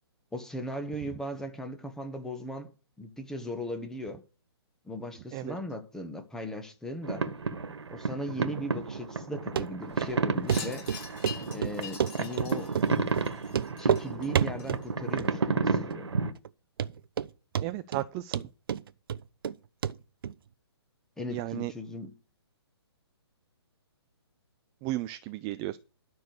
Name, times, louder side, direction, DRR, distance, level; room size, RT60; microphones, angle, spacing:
voice 1, 0.3-2.7 3.0-4.2 4.8-7.3 7.9-10.9 11.5-12.7 13.8-16.1 21.2-22.1, equal, 5° left, 1.4 m, -38 dB
sound 1, 7.0-16.3, right 4 dB, 85° right, 1.7 m, -31 dB
Run, 9.6-9.7 10.0-10.1 10.5-10.6 10.9-11.4 11.6-12.5 12.7-12.9 13.1-13.3 13.5-14.0 14.3-14.8 15.2-15.6 15.9-16.0 16.4-16.5 16.8-17.3 17.5-18.0 18.3-19.6 19.8-19.9 20.2-20.3, right 8 dB, 55° right, 0.8 m, -29 dB
Wind chime, 10.5-15.1, left 6 dB, 30° left, 7.0 m, -44 dB
voice 2, 17.6-18.4 21.3-21.7 24.8-25.8, right 16 dB, 20° right, 0.5 m, -34 dB
12.5 x 6.2 x 6.6 m
hypercardioid pair, 150°, 14 cm